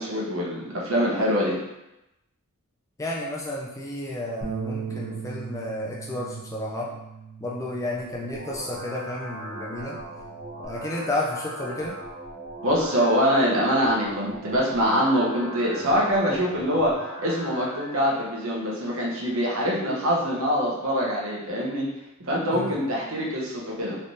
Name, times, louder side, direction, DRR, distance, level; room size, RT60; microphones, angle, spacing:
voice 1, 0.0-1.6 12.6-16.9 17.2-21.9 22.2-24.0, equal, 65° right, -4 dB, 0.9 m, -24 dB
voice 2, 3.0-6.9 7.4-10.0 10.6-12.0 22.5-22.8, left 1 dB, 15° left, -3 dB, 0.3 m, -32 dB
Bass guitar, 4.4-10.7, right 5 dB, 55° left, 1.1 m, -39 dB
sound 1, 7.9-17.9, right 1 dB, 5° right, 0.8 m, -39 dB
3.2 x 3.2 x 2.7 m, 0.92 s
head